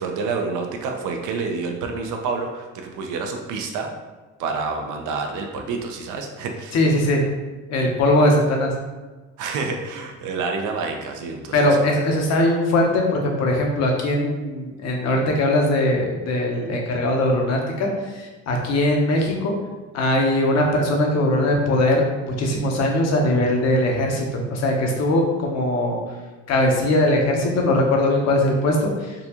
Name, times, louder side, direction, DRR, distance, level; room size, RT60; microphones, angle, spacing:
voice 1, 0.0-3.9 4.4-6.8 9.4-11.8, right 4 dB, 70° right, 3 dB, 0.6 m, -28 dB
voice 2, 6.7-7.2 7.7-8.7 11.5-17.9 18.1-19.5 19.9-26.0 26.5-29.1, left 1 dB, 55° left, 1 dB, 0.9 m, -20 dB
3.9 x 2.3 x 2.9 m, 1.3 s
cardioid pair, 100°, 32 cm